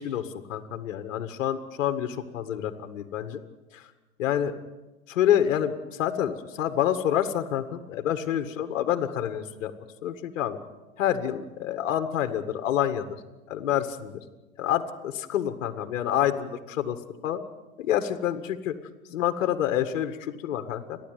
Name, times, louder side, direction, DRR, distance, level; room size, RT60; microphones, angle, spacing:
voice 1, 0.0-3.4 3.7-3.9 4.2-4.6 5.1-9.7 10.0-10.6 11.0-13.1 13.5-14.2 14.6-17.0 17.2-17.4 17.8-18.8 19.1-21.0, left 10 dB, 65° left, 9 dB, 1.9 m, -27 dB
30.0 x 11.5 x 9.4 m, 1.1 s
hypercardioid pair, 105°, 40 cm